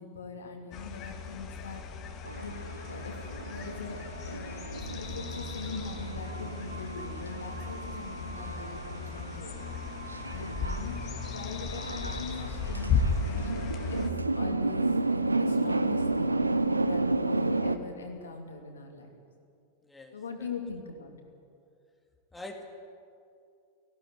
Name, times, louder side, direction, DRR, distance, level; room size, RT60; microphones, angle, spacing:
voice 1, 0.0-1.8 2.4-2.5 2.9-3.1 3.4-4.0 4.3-4.6 4.9-9.7 10.3-11.0 11.3-13.6 13.9-16.4 16.9-19.1 20.1-21.1, left 4 dB, 70° left, 3 dB, 2.9 m, -41 dB
sound 1, 0.7-14.1, left 5 dB, 35° left, 1.9 m, -36 dB
sound 2, 2.2-17.8, right 2 dB, 80° right, 0.8 m, -32 dB
voice 2, 19.8-20.5 22.3-22.6, left 1 dB, 5° left, 2 dB, 2.3 m, -45 dB
18.0 x 16.5 x 9.6 m, 2.4 s
figure-of-eight pair, 90°, 0 cm